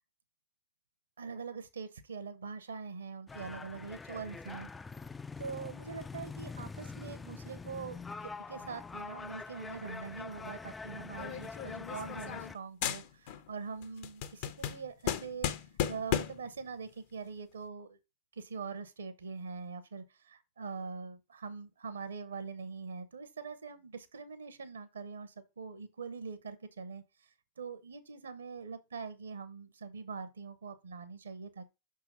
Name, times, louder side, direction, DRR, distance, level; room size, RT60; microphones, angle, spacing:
voice 1, 1.2-4.7 5.4-15.5 15.9-18.0 18.3-27.0 27.6-31.7, right 5 dB, 70° right, 0.9 m, -43 dB
sound 1, 3.3-12.5, left 4 dB, 15° left, 0.3 m, -44 dB
sound 2, 11.2-12.6 12.8-13.5 13.8-16.5, left 10 dB, 50° left, 0.7 m, -35 dB
5.8 x 3.8 x 5.6 m
figure-of-eight pair, 90°, 0 cm